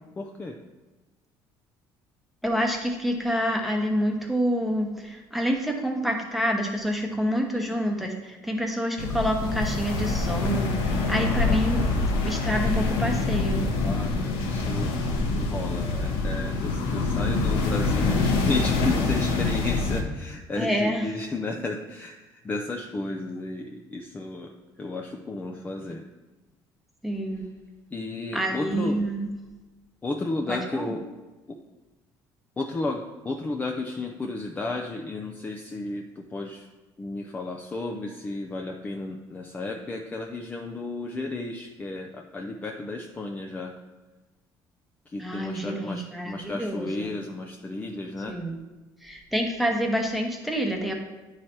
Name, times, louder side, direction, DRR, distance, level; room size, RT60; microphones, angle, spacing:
voice 1, 0.2-0.6 11.2-11.9 13.7-24.5 24.8-26.0 27.9-29.0 30.0-31.0 31.5-31.6 32.6-36.7 37.0-43.7 45.1-48.3, left 2 dB, 20° left, 1 dB, 0.5 m, -33 dB
voice 2, 2.4-13.6 20.6-21.1 27.0-27.5 28.3-29.3 30.5-30.9 45.2-47.1 48.3-48.6 49.0-50.9, equal, ahead, 1 dB, 1.0 m, -27 dB
sound 1, 9.0-20.0, left 3 dB, 80° left, 1.0 m, -25 dB
9.5 x 3.2 x 4.3 m, 1.2 s
cardioid pair, 125°, 9 cm